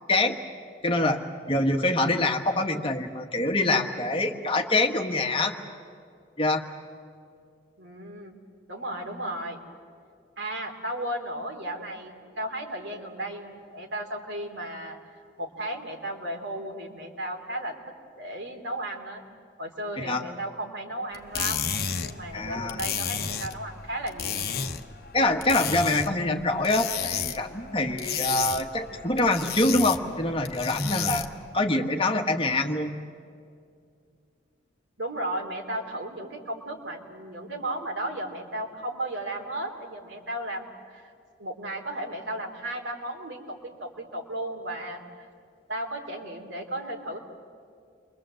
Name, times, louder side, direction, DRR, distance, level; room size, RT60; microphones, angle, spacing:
voice 1, 0.8-1.2 1.5-5.5 6.4-6.6 20.0-20.2 22.3-22.8 25.1-31.3 31.5-32.9, left 2 dB, 30° left, 4 dB, 1.5 m, -25 dB
voice 2, 7.8-8.3 8.7-9.6 10.4-15.0 15.4-17.8 18.2-19.2 19.6-21.7 22.0-24.5 35.0-41.1 41.4-45.2 45.7-47.2, right 1 dB, 85° right, 2 dB, 3.4 m, -35 dB
sound 1, 21.1-31.5, left 7 dB, 55° left, 1.0 m, -33 dB
29.5 x 23.5 x 7.8 m, 2.3 s
head